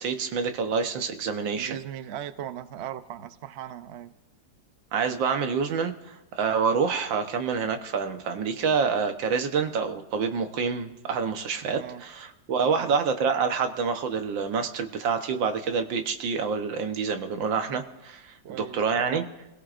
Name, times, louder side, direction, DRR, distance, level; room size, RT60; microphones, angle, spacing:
voice 1, 0.0-1.8 4.9-19.2, right 5 dB, 90° right, 7 dB, 1.8 m, -27 dB
voice 2, 1.5-4.1 11.7-12.0 12.7-13.0 18.4-19.3, right 10 dB, 65° right, 11 dB, 0.6 m, -38 dB
28.0 x 17.0 x 2.5 m, 0.99 s
omnidirectional pair, 2.0 m